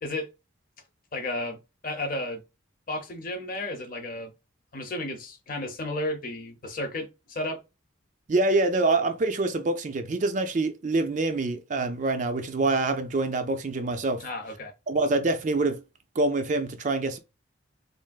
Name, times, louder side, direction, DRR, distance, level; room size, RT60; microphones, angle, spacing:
voice 1, 1.1-2.4 2.9-4.3 4.7-7.6 14.2-14.7, left 1 dB, 45° left, 0.7 m, -33 dB
voice 2, 8.3-14.2 14.9-15.8 16.2-17.2, right 2 dB, 40° right, 0.4 m, -25 dB
3.3 x 2.5 x 2.2 m
head